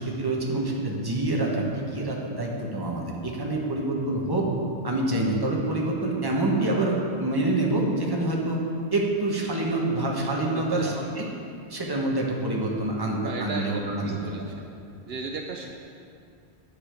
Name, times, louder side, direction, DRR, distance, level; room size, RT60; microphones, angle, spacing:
voice 1, 0.0-4.5 4.8-8.6 8.9-11.3 11.7-14.5, right 2 dB, 20° right, -2 dB, 1.2 m, -26 dB
voice 2, 10.3-11.1 13.2-14.7 15.1-15.7, right 4 dB, 70° right, 2 dB, 0.9 m, -36 dB
9.7 x 7.0 x 5.0 m, 2.4 s
omnidirectional pair, 1.1 m